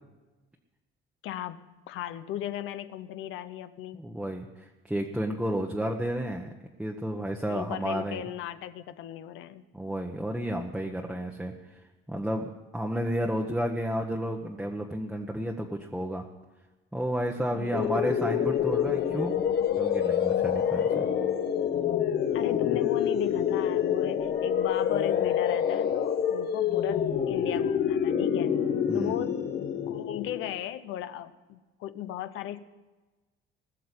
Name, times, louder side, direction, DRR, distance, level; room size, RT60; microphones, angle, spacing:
voice 1, 1.2-4.0 7.5-9.6 17.5-18.0 22.3-28.5 28.9-29.4 29.9-32.6, left 12 dB, 80° left, 12 dB, 0.8 m, -37 dB
voice 2, 4.0-6.5 6.8-8.2 9.7-11.5 12.1-16.2 16.9-19.3 19.8-21.0 28.9-29.1, equal, 5° right, 0 dB, 1.0 m, -31 dB
sound 1, 17.7-30.5, left 8 dB, 55° left, 1.3 m, -27 dB
20.0 x 6.7 x 9.7 m, 1.2 s
cardioid pair, 145°, 20 cm